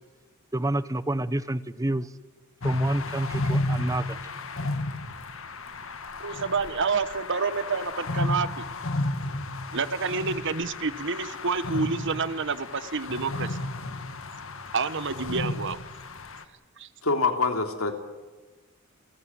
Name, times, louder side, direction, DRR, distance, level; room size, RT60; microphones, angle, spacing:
voice 1, 0.5-2.1 2.6-4.0, right 1 dB, 15° right, 0.8 m, -28 dB
sound 1, 2.6-16.4, left 2 dB, 70° left, 2.1 m, -33 dB
voice 2, 6.2-8.6 9.7-13.6 14.7-15.8 16.8-16.9, right 4 dB, 60° right, 1.3 m, -28 dB
voice 3, 17.0-17.9, left 3 dB, 90° left, 3.3 m, -25 dB
29.5 x 15.5 x 9.8 m
head